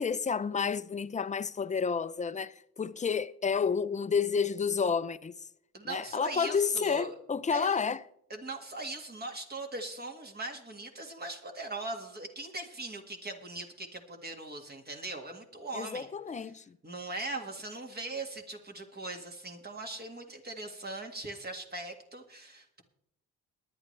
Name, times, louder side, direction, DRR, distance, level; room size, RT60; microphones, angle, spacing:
voice 1, 0.0-5.3 5.8-8.0 15.7-16.6, left 6 dB, 25° left, 0.6 m, -30 dB
voice 2, 5.7-7.1 7.5-7.7 8.3-16.1 16.4-16.5 16.8-22.8, right 2 dB, 30° right, 1.9 m, -40 dB
21.5 x 9.7 x 3.3 m
cardioid pair, 90°, 30 cm